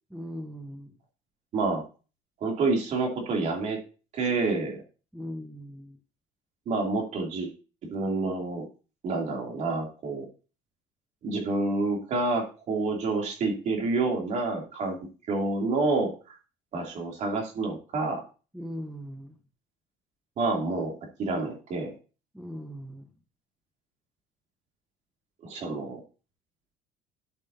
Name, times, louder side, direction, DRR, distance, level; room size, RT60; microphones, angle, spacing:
voice 1, 0.1-0.9 5.1-6.0 18.5-19.3 22.3-23.1, equal, ahead, 5 dB, 1.1 m, -39 dB
voice 2, 1.5-1.8 2.4-3.8 4.1-4.8 6.7-7.5 7.9-8.7 9.0-10.3 11.2-15.0 15.3-16.3 16.7-18.2 20.4-20.9 21.2-21.9 25.4-26.0, right 3 dB, 55° right, 1 dB, 2.9 m, -28 dB
12.0 x 6.3 x 2.7 m, 0.35 s
cardioid pair, 115°, 15 cm